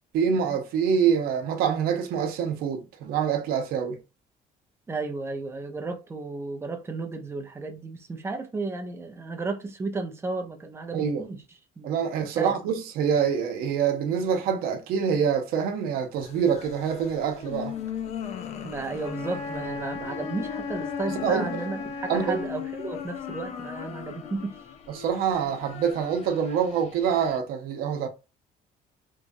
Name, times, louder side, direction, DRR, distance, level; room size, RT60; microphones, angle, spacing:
voice 1, 0.1-4.0 10.9-11.2 11.8-17.7 21.2-21.5 22.1-22.4 25.0-28.1, right 7 dB, 80° right, 0.7 m, -25 dB
voice 2, 4.9-11.4 11.8-11.9 12.4-12.6 18.6-24.6, right 3 dB, 15° right, 0.5 m, -33 dB
sound 1, 16.2-27.4, left 9 dB, 45° left, 0.4 m, -38 dB
Wind instrument woodwind instrument, 19.0-22.5, left 3 dB, 90° left, 1.3 m, -36 dB
3.0 x 2.3 x 2.6 m
cardioid pair, 135°, 15 cm